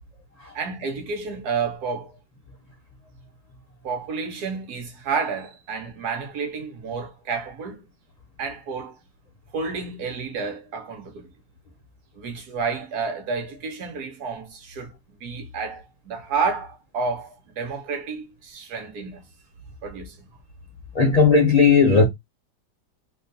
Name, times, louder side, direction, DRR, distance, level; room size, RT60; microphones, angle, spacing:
voice 1, 0.5-2.2 3.8-7.8 8.4-9.0 9.5-11.3 12.1-14.9 15.2-19.2 19.8-20.1, right 5 dB, 70° right, 1.4 m, -30 dB
voice 2, 20.9-22.0, left 5 dB, 70° left, 0.3 m, -15 dB
3.6 x 2.7 x 2.6 m
omnidirectional pair, 1.8 m